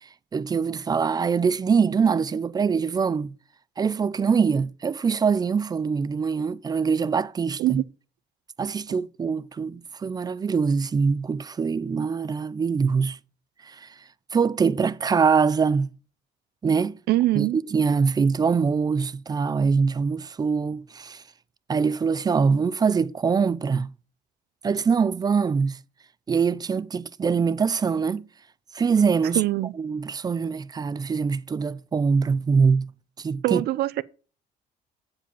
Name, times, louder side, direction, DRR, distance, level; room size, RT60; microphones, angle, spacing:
voice 1, 0.0-3.3 3.8-7.8 8.6-13.2 13.6-13.9 14.3-15.9 16.6-17.0 17.3-21.2 21.7-23.9 24.6-25.8 26.3-28.3 28.7-29.4 29.8-32.9 33.2-33.6, right 5 dB, 25° right, 0.4 m, -23 dB
voice 2, 17.1-17.6 29.4-29.7 33.4-34.0, right 16 dB, 70° right, 0.6 m, -23 dB
9.1 x 5.0 x 6.9 m
cardioid pair, 110°, 17 cm